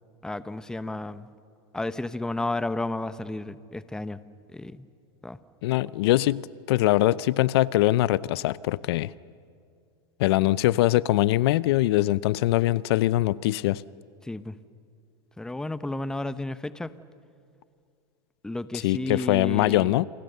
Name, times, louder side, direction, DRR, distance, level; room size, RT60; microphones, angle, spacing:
voice 1, 0.2-1.3 1.7-4.2 4.5-4.9 5.2-5.4 14.2-14.6 15.4-16.9 18.4-20.0, left 2 dB, 5° left, 13 dB, 0.8 m, -32 dB
voice 2, 5.6-9.1 10.2-13.8 18.8-20.0, left 16 dB, 70° left, 19 dB, 0.6 m, -22 dB
29.5 x 28.5 x 6.8 m, 2.3 s
supercardioid pair, 130°, 14 cm